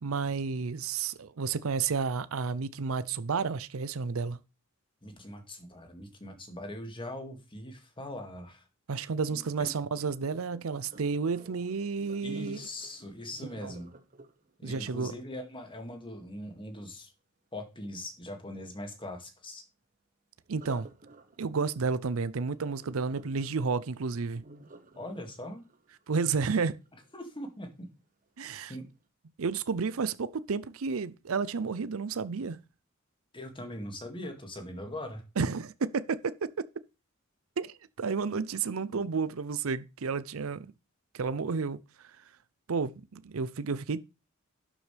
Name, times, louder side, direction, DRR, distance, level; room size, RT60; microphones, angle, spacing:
voice 1, 0.0-4.4 8.9-12.6 13.6-13.7 14.6-15.1 20.5-20.9 21.4-24.4 26.1-26.8 28.4-28.7 29.4-32.6 35.4-36.5 37.6-40.7 41.1-42.2 42.7-44.0, right 5 dB, 75° right, 0.6 m, -31 dB
voice 2, 5.0-8.7 9.3-9.7 12.2-13.9 14.6-17.1 17.5-19.6 25.0-25.6 27.1-27.9 28.7-28.9 33.3-35.2 38.9-39.0, left 1 dB, 25° left, 2.2 m, -41 dB
Sink (filling or washing), 10.1-16.1 20.5-27.5 28.0-28.3 28.8-28.9, right 2 dB, 40° right, 1.2 m, -55 dB
12.0 x 7.5 x 3.4 m
head